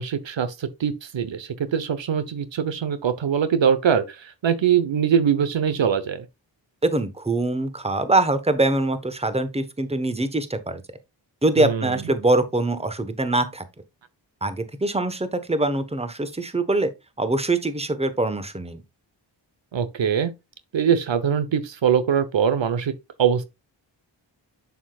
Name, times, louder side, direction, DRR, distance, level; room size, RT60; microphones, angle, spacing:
voice 1, 0.0-6.2 11.6-12.0 19.7-20.3 20.7-22.9 23.2-23.4, right 8 dB, 75° right, 1.0 m, -22 dB
voice 2, 6.8-10.8 11.4-13.6 14.4-16.9 17.2-18.8, right 2 dB, 15° right, 1.1 m, -23 dB
7.1 x 6.9 x 2.3 m
cardioid pair, 65°, 45 cm